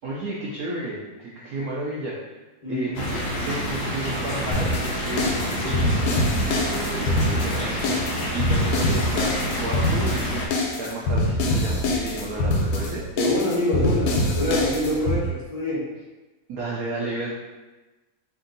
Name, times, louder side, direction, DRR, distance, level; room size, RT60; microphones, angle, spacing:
voice 1, 0.0-2.3 2.7-10.5 10.8-13.0 16.5-17.3, right 2 dB, 85° right, -5 dB, 0.7 m, -32 dB
sound 1, 3.0-10.5, equal, 70° left, 1.2 m, -28 dB
sound 2, 4.5-15.2, left 1 dB, 85° left, 1.6 m, -24 dB
voice 2, 13.2-15.9, left 1 dB, 20° left, -9 dB, 1.2 m, -25 dB
3.4 x 2.7 x 3.9 m, 1.2 s
omnidirectional pair, 2.3 m